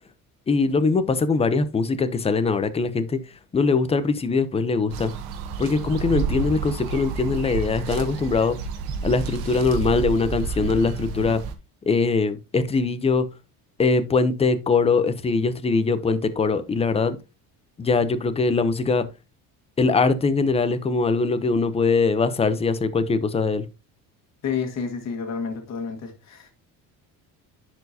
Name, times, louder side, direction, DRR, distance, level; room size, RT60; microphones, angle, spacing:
voice 1, 0.5-3.2 3.5-5.1 5.6-8.6 9.0-11.4 11.9-13.2 13.8-17.2 17.8-19.0 19.8-23.7, left 4 dB, 15° left, 0.6 m, -22 dB
sound 1, 4.9-11.5, right 5 dB, 90° right, 1.3 m, -30 dB
voice 2, 24.4-26.5, left 6 dB, 45° left, 1.6 m, -30 dB
10.5 x 4.5 x 2.7 m
cardioid pair, 145°, 36 cm